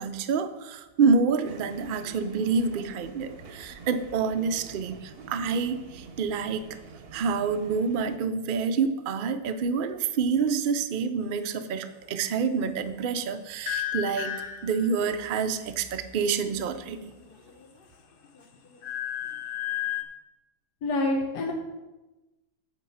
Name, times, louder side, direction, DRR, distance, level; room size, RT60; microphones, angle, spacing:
voice 1, 0.0-6.6 7.1-14.3 14.6-17.1, right 5 dB, 70° right, 9 dB, 0.4 m, -27 dB
sound 1, 1.4-8.2, right 4 dB, 50° right, 0.8 m, -47 dB
sound 2, 13.7-15.2 17.1-17.8 18.2-20.0, left 11 dB, 50° left, 0.7 m, -33 dB
voice 2, 20.8-21.5, left 2 dB, 85° left, 1 dB, 1.5 m, -26 dB
8.8 x 4.5 x 7.0 m, 1.1 s
omnidirectional pair, 1.7 m